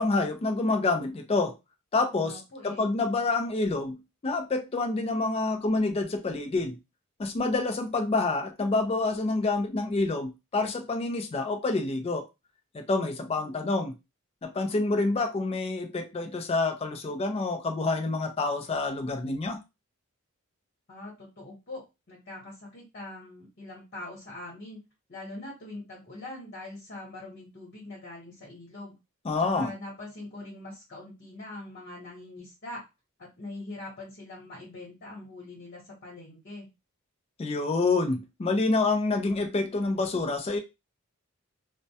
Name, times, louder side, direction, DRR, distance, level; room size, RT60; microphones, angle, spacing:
voice 1, 0.0-1.5 1.9-6.8 7.2-12.3 12.7-13.9 14.4-19.6 29.2-29.7 37.4-40.6, left 3 dB, 30° left, 0.4 m, -27 dB
voice 2, 2.1-2.9 13.4-13.9 20.9-24.8 25.1-28.9 29.5-32.8 33.2-36.7, left 2 dB, 45° left, 1.0 m, -43 dB
2.2 x 2.1 x 2.7 m
head